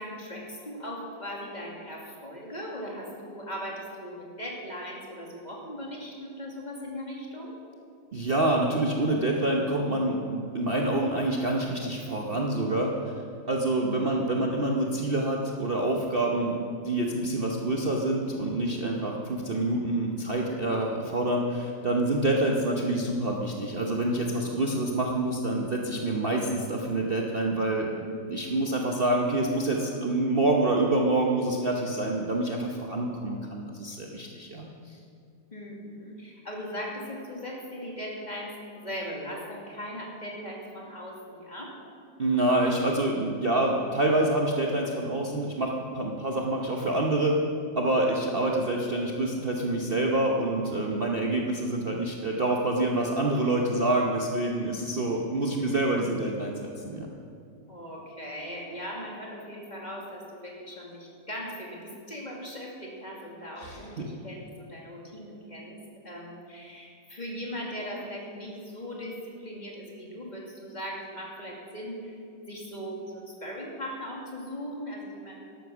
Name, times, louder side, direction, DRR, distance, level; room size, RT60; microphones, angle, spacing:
voice 1, 0.0-7.6 28.1-28.2 35.5-41.7 57.7-72.2 72.5-75.4, equal, 25° left, -2 dB, 2.5 m, -39 dB
voice 2, 8.1-13.1 13.5-16.6 16.8-27.9 28.3-35.0 42.2-47.4 47.8-57.1 63.6-64.1, right 2 dB, 40° right, 0 dB, 1.1 m, -27 dB
13.0 x 12.0 x 6.2 m, 2.4 s
omnidirectional pair, 1.9 m